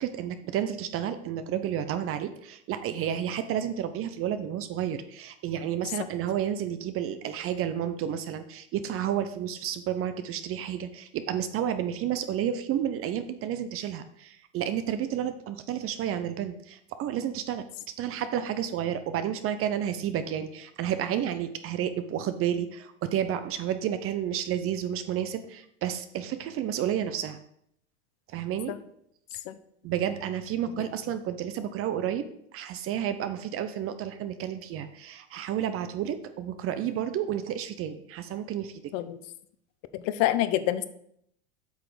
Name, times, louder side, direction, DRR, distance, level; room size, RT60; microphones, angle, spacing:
voice 1, 0.0-17.6 18.0-27.4 28.3-28.7 29.8-32.2 32.5-38.7, right 10 dB, 40° right, 10 dB, 0.8 m, -31 dB
voice 2, 39.9-40.9, left 13 dB, 55° left, 13 dB, 0.9 m, -27 dB
8.3 x 6.0 x 5.0 m, 0.72 s
hypercardioid pair, 100°, 35 cm